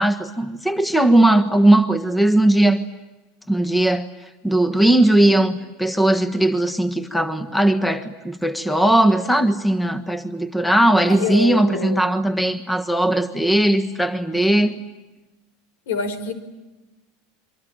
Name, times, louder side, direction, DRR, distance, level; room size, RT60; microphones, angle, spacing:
voice 1, 0.0-2.8 3.5-4.1 4.4-14.8, right 1 dB, 5° left, 10 dB, 1.4 m, -18 dB
voice 2, 11.1-12.0 14.3-14.7 15.9-16.3, left 5 dB, 85° left, 12 dB, 5.2 m, -26 dB
27.5 x 24.5 x 8.9 m, 1.1 s
supercardioid pair, 155°, 0 cm